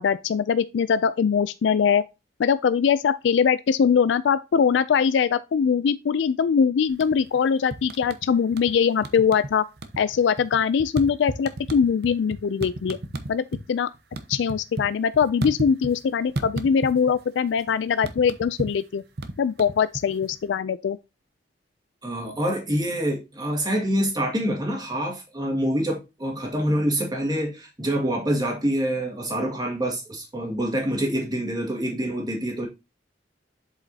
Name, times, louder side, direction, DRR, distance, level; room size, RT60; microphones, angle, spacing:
voice 1, 0.0-2.0 2.4-9.6 10.0-13.0 13.3-13.9 14.3-19.0 19.4-21.0, left 6 dB, 85° left, 0.3 m, -22 dB
sound 1, 6.9-7.4 7.7-8.7 9.0-9.5 9.8-13.6 13.9-16.0 16.4-17.2 17.5-20.4, right 2 dB, 65° right, 0.8 m, -33 dB
voice 2, 22.0-32.7, right 1 dB, 25° right, 2.0 m, -26 dB
7.6 x 5.1 x 2.8 m
head